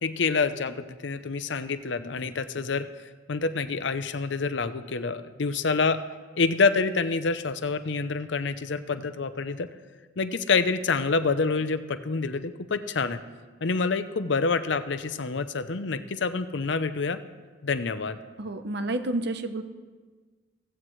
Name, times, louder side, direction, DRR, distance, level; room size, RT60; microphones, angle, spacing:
voice 1, 0.0-2.9 3.3-6.0 6.4-9.7 10.2-13.2 13.6-17.2 17.6-18.2, left 4 dB, 65° left, 10 dB, 0.7 m, -27 dB
voice 2, 18.4-19.6, right 2 dB, 60° right, 9 dB, 0.8 m, -30 dB
16.0 x 15.5 x 3.2 m, 1.4 s
head